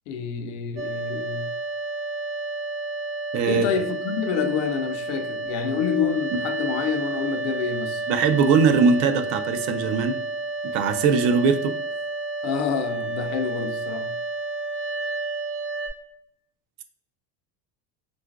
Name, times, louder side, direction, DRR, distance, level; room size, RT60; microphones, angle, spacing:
voice 1, 0.1-1.5 3.5-8.0 12.4-14.1, left 7 dB, 65° left, 0.5 m, -27 dB
sound 1, 0.8-15.9, right 3 dB, 35° right, 0.7 m, -31 dB
voice 2, 3.3-3.7 8.1-10.1 10.7-11.7, right 5 dB, 80° right, 0.6 m, -20 dB
3.7 x 2.4 x 2.3 m
cardioid pair, 170°, 47 cm